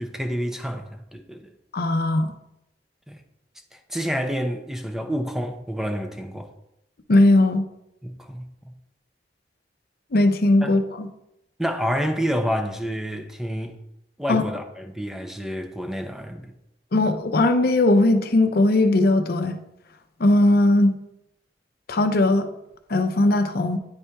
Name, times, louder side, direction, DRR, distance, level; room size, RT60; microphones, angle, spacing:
voice 1, 0.0-1.5 3.1-3.2 3.7-6.5 8.0-8.7 10.6-10.8 11.6-13.8 14.2-16.5, equal, 5° right, 5 dB, 0.6 m, -29 dB
voice 2, 1.7-2.3 7.1-7.6 10.1-11.1 14.3-14.4 16.9-19.6 20.2-20.9 21.9-22.5 22.9-23.8, left 2 dB, 60° left, 8 dB, 0.6 m, -19 dB
9.6 x 4.3 x 3.4 m, 0.84 s
head